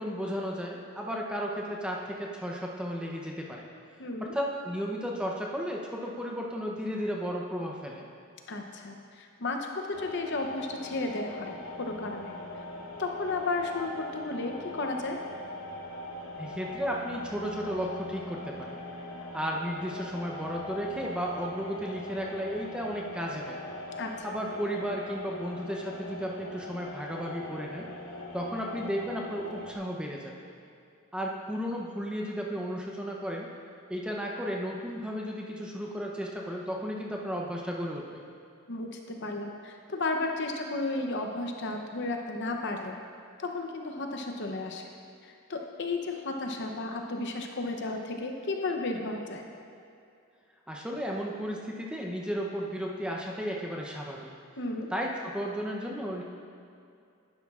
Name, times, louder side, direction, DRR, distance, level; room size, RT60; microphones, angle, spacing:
voice 1, 0.0-3.6 4.2-8.1 16.4-18.8 19.3-23.6 24.2-27.9 28.3-30.3 31.1-33.5 33.9-38.2 50.7-54.3 54.9-56.2, equal, 5° right, -1 dB, 0.7 m, -34 dB
voice 2, 4.0-4.3 8.5-12.4 13.0-15.2 24.0-24.2 38.7-43.0 43.4-44.8 45.2-49.4 54.6-54.9, left 2 dB, 55° left, 3 dB, 0.7 m, -33 dB
sound 1, 9.9-29.7, left 1 dB, 75° left, 1.0 m, -41 dB
11.0 x 10.0 x 2.4 m, 2.5 s
head